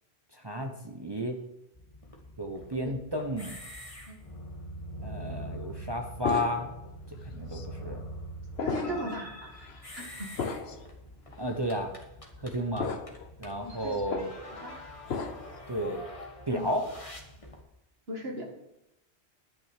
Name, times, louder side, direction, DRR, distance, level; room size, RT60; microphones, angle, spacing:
voice 1, 0.3-1.4 2.4-3.6 5.0-6.7 7.2-8.0 8.8-9.0 11.4-11.9 12.4-12.9 13.4-14.3 15.7-16.0 16.5-16.9, equal, 25° right, 3 dB, 1.0 m, -32 dB
sound 1, 1.8-17.6, equal, 30° left, 1.7 m, -44 dB
sound 2, 6.2-6.9 7.5-7.7 8.6-9.2 9.5-9.8 10.4-10.8 11.5-11.6 12.8-13.3 13.6-14.3 15.1-15.6, left 5 dB, 75° left, 1.2 m, -34 dB
voice 2, 8.6-9.5 9.9-10.3 13.6-14.0 14.6-14.8 16.5-16.7 18.1-18.5, right 1 dB, 70° right, 1 dB, 2.3 m, -37 dB
11.0 x 6.3 x 8.2 m, 0.86 s
omnidirectional pair, 1.1 m